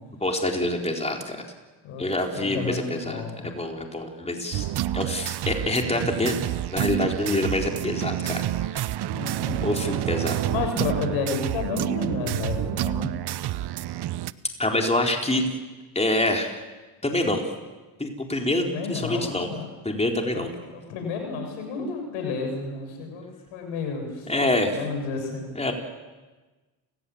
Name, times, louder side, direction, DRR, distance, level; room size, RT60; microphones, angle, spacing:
voice 1, 0.2-1.4 2.0-4.7 4.9-6.4 6.7-8.4 8.7-8.9 9.6-10.4 14.6-15.4 15.9-16.6 17.0-17.4 18.0-19.5 19.8-20.5 24.3-24.7 25.6-25.7, left 1 dB, 15° left, 2 dB, 4.0 m, -26 dB
voice 2, 2.4-3.5 9.1-9.6 10.4-13.1 18.6-19.7 20.3-20.5 20.7-25.5, left 4 dB, 80° left, 4 dB, 7.0 m, -31 dB
sound 1, 4.5-14.3, right 13 dB, 55° right, 0.9 m, -28 dB
30.0 x 16.5 x 8.7 m, 1.2 s
supercardioid pair, 65°, 47 cm